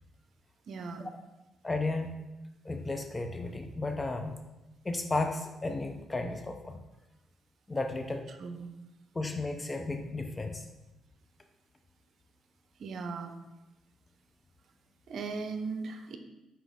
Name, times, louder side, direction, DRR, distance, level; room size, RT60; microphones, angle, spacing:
voice 1, 0.7-1.1 8.4-8.7 12.8-13.4 15.1-16.2, right 4 dB, 60° right, 7 dB, 0.7 m, -38 dB
voice 2, 1.6-2.2 2.6-4.4 4.8-6.8 7.7-8.2 9.1-10.6, left 2 dB, 20° left, 5 dB, 0.5 m, -33 dB
6.1 x 4.4 x 3.6 m, 1.0 s
cardioid pair, 90°, 0 cm